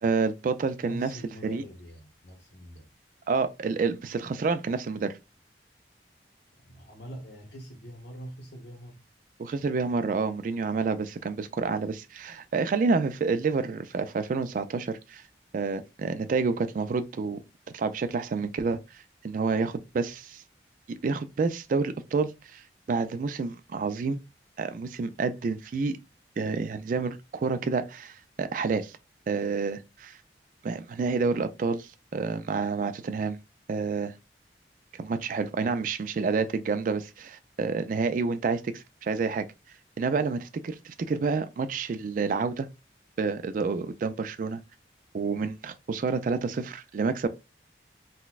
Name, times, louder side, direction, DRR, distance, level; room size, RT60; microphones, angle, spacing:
voice 1, 0.0-1.1 1.4-1.6 3.3-5.2 9.4-15.2 15.5-17.4 17.7-20.4 20.9-24.2 24.6-26.0 26.4-29.0 29.3-30.2 30.6-33.4 33.7-34.1 34.9-39.5 40.0-42.7 43.2-44.6 45.1-47.3, right 4 dB, 50° right, 0.3 m, -29 dB
voice 2, 0.8-2.9 6.6-9.0, right 1 dB, 80° left, 1.1 m, -44 dB
3.9 x 2.2 x 2.4 m
head